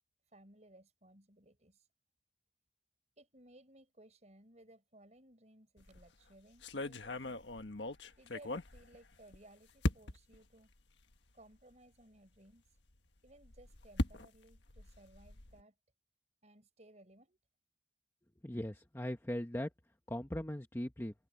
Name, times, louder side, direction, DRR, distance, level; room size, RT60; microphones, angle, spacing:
voice 1, 0.3-1.9 3.2-7.3 8.2-10.7 11.3-12.8 13.2-15.7 16.4-17.4, right 1 dB, 40° right, 6.8 m, -60 dB
sound 1, 5.8-6.1 6.6-9.4 9.8-10.4 11.1-11.2 11.5-11.6 13.3-15.6, left 2 dB, 85° left, 1.5 m, -39 dB
voice 2, 18.4-19.7 20.1-21.1, left 1 dB, 15° left, 1.0 m, -39 dB
head